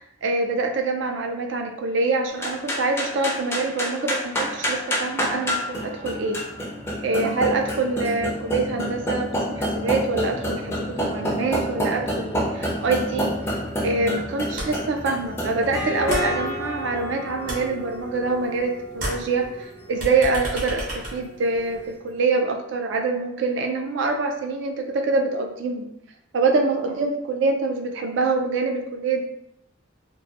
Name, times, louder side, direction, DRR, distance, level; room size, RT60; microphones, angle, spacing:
voice 1, 0.0-6.4 7.0-13.3 13.8-25.9 26.3-29.2, right 3 dB, 70° right, 4 dB, 0.4 m, -25 dB
sound 1, 2.3-21.8, equal, 15° left, 0.3 m, -29 dB
sound 2, 14.6-15.0 15.2-17.0 17.3-18.6 18.9-21.9, right 1 dB, 45° right, 0.8 m, -33 dB
2.2 x 2.1 x 2.6 m, 0.77 s
head